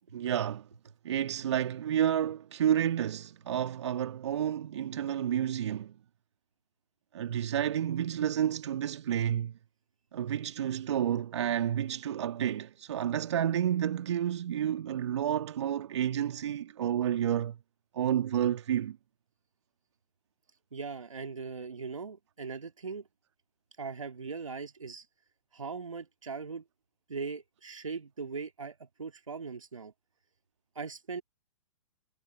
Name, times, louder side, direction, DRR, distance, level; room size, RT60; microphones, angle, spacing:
voice 1, 0.1-0.7 1.0-6.0 7.1-9.5 10.1-17.6 17.9-19.0, right 10 dB, 60° right, 1.7 m, -30 dB
voice 2, 20.7-23.1 23.8-25.1 25.5-26.6 27.1-29.9 30.8-31.2, right 5 dB, 80° right, 2.3 m, -39 dB
figure-of-eight pair, 115°, 17 cm